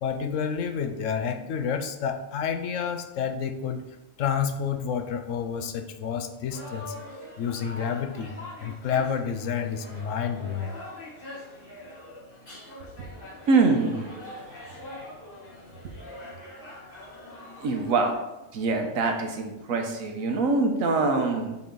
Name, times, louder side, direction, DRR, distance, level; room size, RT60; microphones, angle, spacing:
voice 1, 0.0-3.8 4.2-6.9 7.4-10.8, left 7 dB, 70° left, 7 dB, 1.0 m, -29 dB
sound 1, 6.5-18.1, left 1 dB, 40° left, 2.0 m, -43 dB
voice 2, 13.5-14.1 14.5-14.7 17.6-18.2 18.5-21.6, right 3 dB, 85° right, 4 dB, 1.4 m, -24 dB
7.5 x 4.2 x 3.8 m, 0.95 s
omnidirectional pair, 1.4 m